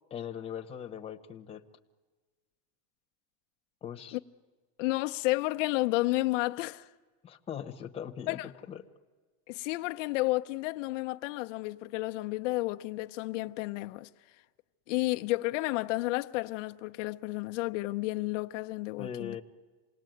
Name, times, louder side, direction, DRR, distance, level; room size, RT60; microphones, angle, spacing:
voice 1, 0.1-1.6 3.8-4.2 7.2-8.4 8.7-8.8 19.0-19.4, left 8 dB, 15° left, 1.1 m, -40 dB
voice 2, 4.8-6.9 8.3-8.5 9.5-14.1 14.9-19.4, left 20 dB, 80° left, 0.8 m, -31 dB
27.5 x 19.0 x 9.2 m
supercardioid pair, 155°, 37 cm